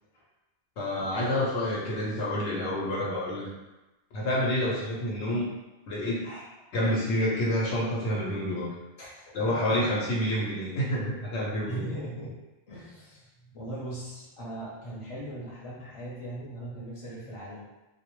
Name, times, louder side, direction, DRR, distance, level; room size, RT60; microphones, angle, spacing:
voice 1, 0.8-3.5 4.1-5.5 5.9-6.3 6.7-8.7 9.3-11.8, left 1 dB, 75° left, -4 dB, 0.9 m, -28 dB
voice 2, 9.0-9.9 11.7-12.3 12.7-17.7, right 1 dB, 35° left, -6 dB, 0.7 m, -39 dB
2.2 x 2.1 x 2.9 m, 1.0 s
omnidirectional pair, 1.2 m